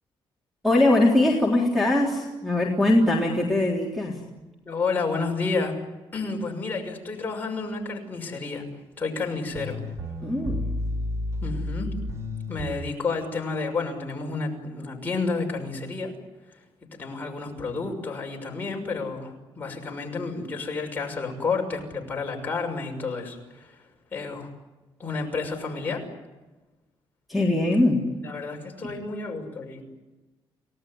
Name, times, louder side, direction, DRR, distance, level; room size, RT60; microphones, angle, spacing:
voice 1, 0.6-4.2 10.2-10.6 27.3-28.0 28.8-28.9, left 1 dB, ahead, -5 dB, 3.7 m, -21 dB
voice 2, 4.6-5.8 6.1-8.6 9.0-9.8 11.4-11.9 12.5-16.1 16.9-23.8 24.1-24.5 25.0-26.0 28.2-29.8, left 4 dB, 20° left, 0 dB, 6.1 m, -30 dB
sound 1, 9.2-9.3 9.5-12.8, left 1 dB, 30° right, 2.2 m, -31 dB
30.0 x 18.5 x 9.6 m, 1.1 s
cardioid pair, 170°, 9 cm